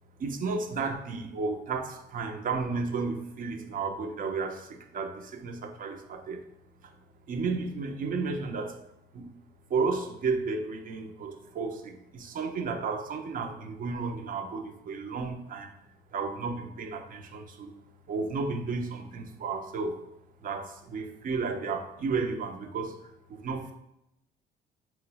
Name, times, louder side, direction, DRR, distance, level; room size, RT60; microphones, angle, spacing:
voice 1, 0.2-6.4 6.8-6.9 7.3-8.8 9.1-9.3 9.7-15.7 16.1-17.7 18.1-20.0 20.4-23.0 23.3-23.7, right 4 dB, 45° right, 6 dB, 0.6 m, -33 dB
3.7 x 3.0 x 4.7 m, 0.85 s
cardioid pair, 95°, 19 cm